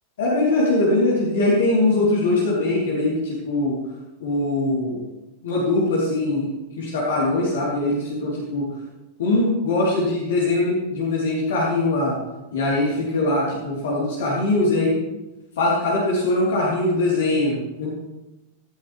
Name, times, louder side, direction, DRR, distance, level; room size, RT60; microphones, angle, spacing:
voice 1, 0.2-3.8 4.2-5.0 5.4-6.5 6.8-8.7 9.2-12.1 12.5-14.9 15.6-17.9, left 2 dB, 60° left, -5 dB, 4.2 m, -21 dB
17.5 x 14.5 x 3.6 m, 1.0 s
figure-of-eight pair, 90°, 0 cm